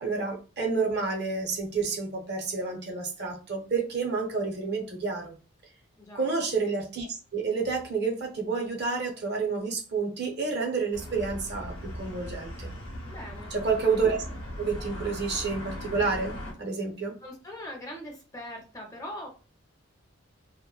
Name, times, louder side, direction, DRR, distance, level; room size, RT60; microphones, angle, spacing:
voice 1, 0.0-5.4 6.1-12.7 13.5-14.2 14.6-17.1, right 4 dB, 55° right, 1 dB, 0.6 m, -29 dB
voice 2, 6.0-6.3 13.1-13.6 17.2-19.3, left 1 dB, 15° left, 1 dB, 0.5 m, -41 dB
sound 1, 10.9-16.5, equal, 85° left, 0.7 m, -39 dB
2.8 x 2.1 x 2.3 m, 0.35 s
head